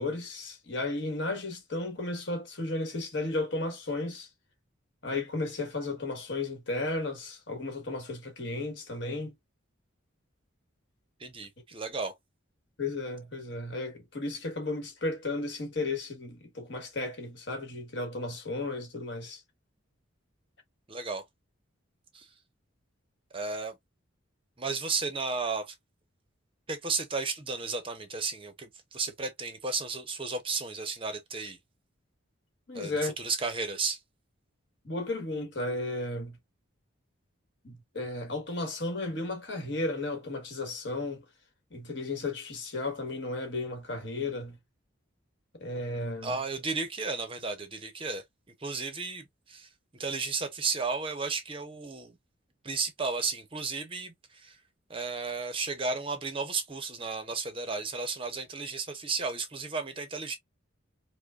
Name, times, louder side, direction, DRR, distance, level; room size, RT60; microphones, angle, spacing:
voice 1, 0.0-4.3 5.0-9.3 12.8-19.4 32.7-33.1 34.8-36.4 37.6-41.2 41.7-44.6 45.6-46.4, left 2 dB, 60° left, 1.4 m, -34 dB
voice 2, 11.2-12.1 20.9-21.2 22.1-22.3 23.3-23.7 24.6-25.7 26.7-31.6 32.7-34.0 46.2-48.2 48.6-52.1 52.6-54.6 54.9-60.4, right 4 dB, 25° right, 0.6 m, -33 dB
4.9 x 2.1 x 2.3 m
head